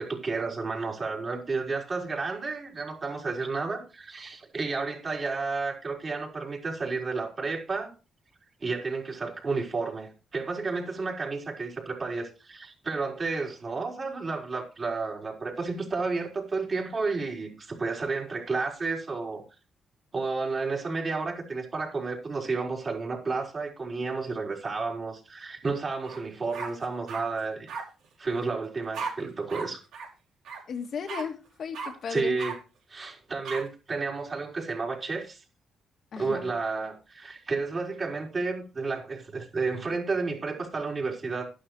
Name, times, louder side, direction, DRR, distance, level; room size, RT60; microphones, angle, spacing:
voice 1, 0.0-7.9 8.6-19.4 20.1-27.7 28.2-29.8 32.1-32.5 32.9-35.4 36.2-41.5, right 4 dB, 35° right, 4.5 m, -31 dB
sound 1, 26.0-26.2 26.5-27.2 27.7-27.8 28.9-29.1 29.5-29.7 29.9-30.1 30.4-30.6 31.1-31.2 31.7-31.9 32.4-32.5 33.4-33.6, right 5 dB, 85° right, 5.2 m, -35 dB
voice 2, 30.7-32.4 36.1-36.5, left 6 dB, 55° left, 1.7 m, -35 dB
12.5 x 11.5 x 3.2 m
cardioid pair, 130°, 0 cm